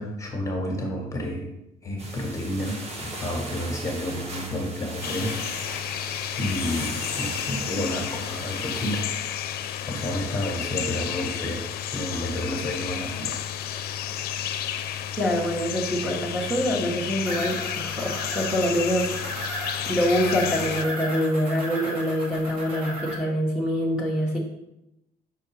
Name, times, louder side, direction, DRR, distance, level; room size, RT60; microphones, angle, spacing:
voice 1, 0.0-1.5 1.8-5.3 6.4-9.0 9.9-11.6 11.9-13.4 20.2-20.4, left 1 dB, 20° left, 0 dB, 1.6 m, -30 dB
sound 1, 2.0-9.0, right 2 dB, 40° right, 1.3 m, -38 dB
sound 2, 5.0-20.9, left 10 dB, 65° left, 0.5 m, -32 dB
voice 2, 15.2-19.5 19.9-24.4, equal, 5° right, -4 dB, 1.4 m, -25 dB
sound 3, 17.2-23.2, right 1 dB, 55° right, 2.2 m, -35 dB
6.1 x 4.5 x 4.8 m, 0.89 s
cardioid pair, 110°, 17 cm